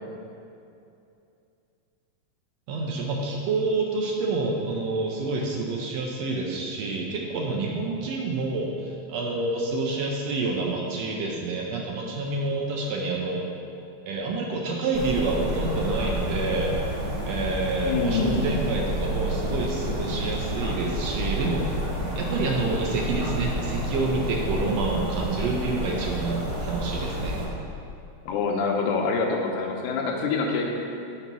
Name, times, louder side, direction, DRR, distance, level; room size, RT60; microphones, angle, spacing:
voice 1, 2.7-13.5 14.1-16.7 17.3-21.8 22.2-27.4, right 3 dB, 75° right, -1 dB, 1.7 m, -28 dB
sound 1, 14.9-27.5, equal, 60° right, 0.6 m, -30 dB
voice 2, 17.9-18.5 28.3-30.7, left 4 dB, 90° left, 1 dB, 2.2 m, -25 dB
5.4 x 4.0 x 6.0 m, 2.6 s
omnidirectional pair, 3.4 m